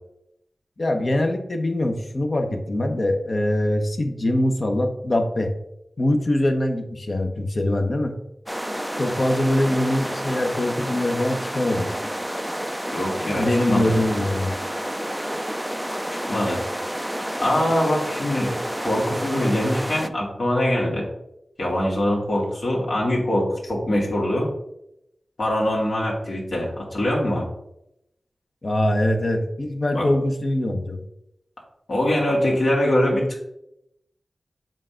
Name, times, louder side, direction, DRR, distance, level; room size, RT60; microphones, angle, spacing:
voice 1, 0.8-5.5 6.0-8.1 9.0-11.9 13.3-14.5 28.6-31.0, left 1 dB, 50° left, 4 dB, 0.9 m, -23 dB
sound 1, 8.5-20.1, equal, 5° right, 0.4 m, -29 dB
voice 2, 12.9-14.0 16.1-16.6 17.4-21.1 21.6-24.5 25.4-27.5 29.9-30.1 31.9-33.4, left 1 dB, 65° left, -3 dB, 1.8 m, -23 dB
7.4 x 2.5 x 5.6 m, 0.83 s
cardioid pair, 50°, 0 cm